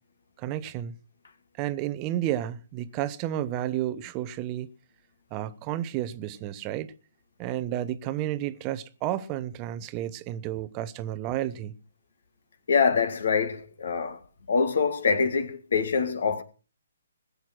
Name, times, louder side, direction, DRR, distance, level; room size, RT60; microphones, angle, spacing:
voice 1, 0.4-1.0 1.6-4.7 5.3-6.9 7.4-11.8, right 12 dB, 25° right, 0.9 m, -31 dB
voice 2, 12.7-14.2 14.5-16.4, left 5 dB, 60° left, 2.4 m, -24 dB
20.5 x 8.2 x 6.2 m
figure-of-eight pair, 135°, 0 cm